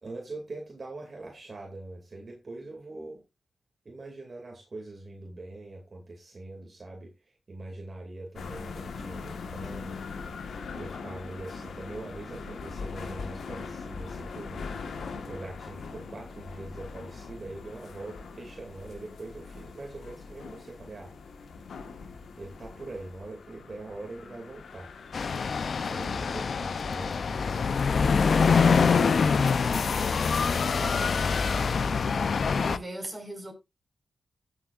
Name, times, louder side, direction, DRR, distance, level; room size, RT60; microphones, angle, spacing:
voice 1, 0.0-3.2 3.8-10.0 10.7-14.8 15.2-21.1 22.4-24.9 25.8-28.1, right 2 dB, 45° right, 2.6 m, -43 dB
sound 1, 8.4-26.5, left 4 dB, 90° left, 1.5 m, -41 dB
sound 2, 25.1-32.8, left 5 dB, 65° left, 0.6 m, -25 dB
voice 2, 30.5-31.7 32.5-33.5, right 1 dB, 15° right, 5.8 m, -39 dB
16.5 x 7.5 x 2.6 m
cardioid pair, 80°, 0 cm